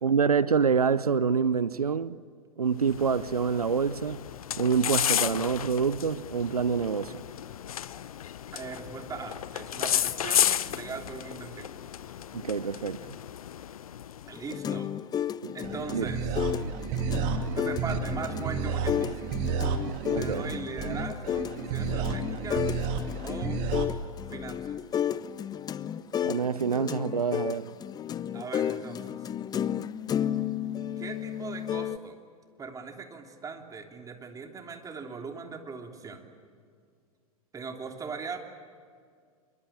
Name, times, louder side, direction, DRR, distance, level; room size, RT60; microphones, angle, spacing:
voice 1, 0.0-2.2 2.6-4.3 4.6-7.2 12.3-13.0 15.4-15.6 15.9-16.1 20.1-20.5 26.2-27.8, right 6 dB, 90° right, 0.7 m, -26 dB
sound 1, 2.8-14.5, left 10 dB, 70° left, 0.8 m, -32 dB
voice 2, 8.5-11.7 14.3-14.9 15.5-16.4 17.6-19.3 20.1-22.7 23.2-23.6 24.3-24.8 28.3-29.2 31.0-32.2 32.6-36.2 37.5-38.4, right 5 dB, 20° right, 3.3 m, -40 dB
sound 2, 14.3-32.0, left 9 dB, 20° left, 0.7 m, -33 dB
sound 3, 15.6-23.9, right 5 dB, 45° right, 2.8 m, -31 dB
25.5 x 23.0 x 8.9 m
hypercardioid pair, 100°, 19 cm